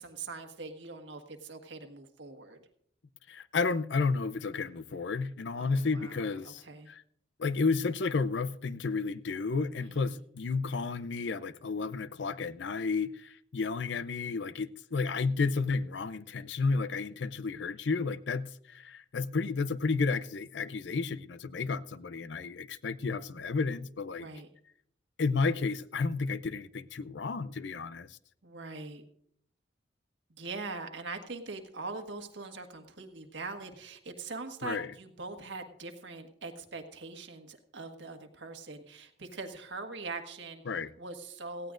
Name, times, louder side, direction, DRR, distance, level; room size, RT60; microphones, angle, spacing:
voice 1, 0.0-2.6 5.6-6.9 9.8-10.2 24.2-24.5 28.4-29.0 30.4-40.6 41.0-41.7, right 3 dB, 75° right, 1.6 m, -42 dB
voice 2, 3.3-7.0 7.4-24.3 25.2-28.2 34.6-34.9 40.7-40.9, left 4 dB, 70° left, 0.5 m, -32 dB
18.0 x 15.5 x 2.5 m
head